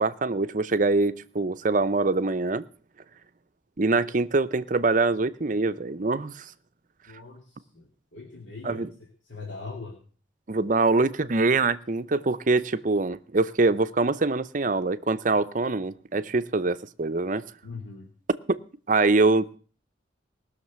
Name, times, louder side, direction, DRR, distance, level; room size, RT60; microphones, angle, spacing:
voice 1, 0.0-2.6 3.8-6.5 8.6-8.9 10.5-17.4 18.5-18.6 18.9-19.6, right 3 dB, 40° right, 13 dB, 0.6 m, -24 dB
voice 2, 7.1-8.9 9.2-10.0 17.6-18.1, left 3 dB, 70° left, -1 dB, 2.6 m, -41 dB
19.5 x 6.5 x 7.3 m, 0.42 s
head